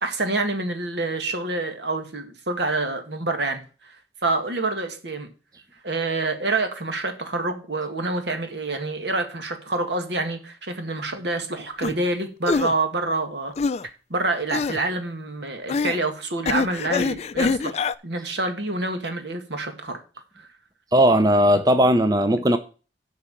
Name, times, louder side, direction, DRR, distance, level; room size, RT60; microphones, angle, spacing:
voice 1, 0.0-4.0 4.2-5.3 5.8-13.5 14.1-20.0 20.4-20.5, right 2 dB, 80° right, 1.8 m, -27 dB
sound 1, 11.8-11.9 12.4-12.7 13.6-13.9 14.5-14.8 15.7-16.0 16.4-17.9, left 4 dB, 35° left, 0.4 m, -24 dB
voice 2, 20.9-22.6, equal, 20° right, 0.5 m, -17 dB
8.2 x 4.8 x 7.4 m
head